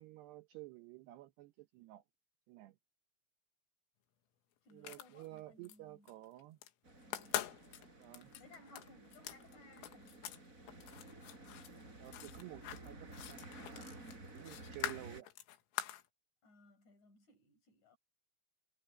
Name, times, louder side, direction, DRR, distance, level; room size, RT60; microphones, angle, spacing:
voice 1, 0.0-2.0 2.5-2.8 4.7-6.6 8.0-8.3 12.0-13.5 14.3-15.3, right 17 dB, 80° right, 2.5 m, -52 dB
voice 2, 4.6-6.2 7.0-7.5 8.3-10.3 16.4-18.0, left 2 dB, 40° left, 6.3 m, -62 dB
sound 1, 4.7-5.8 6.1-6.7 7.0-10.4 10.7-16.1, left 12 dB, 90° left, 4.1 m, -45 dB
sound 2, 6.8-15.2, right 2 dB, 15° right, 4.8 m, -54 dB
omnidirectional pair, 5.7 m